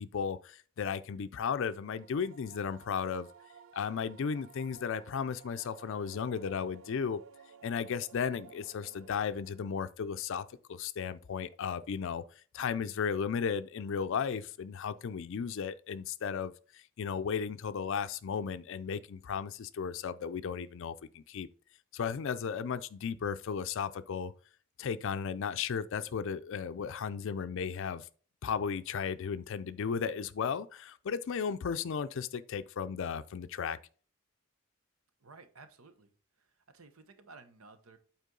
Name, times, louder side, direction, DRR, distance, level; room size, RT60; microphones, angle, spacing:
voice 1, 0.0-3.3 3.7-7.2 7.6-12.2 12.5-21.5 21.9-24.3 24.8-28.1 28.4-33.8, left 6 dB, 65° left, 0.4 m, -35 dB
sound 1, 1.7-9.8, right 6 dB, 65° right, 0.6 m, -56 dB
voice 2, 35.2-36.1 36.4-38.0, right 3 dB, 90° right, 1.0 m, -55 dB
8.2 x 4.4 x 3.8 m
head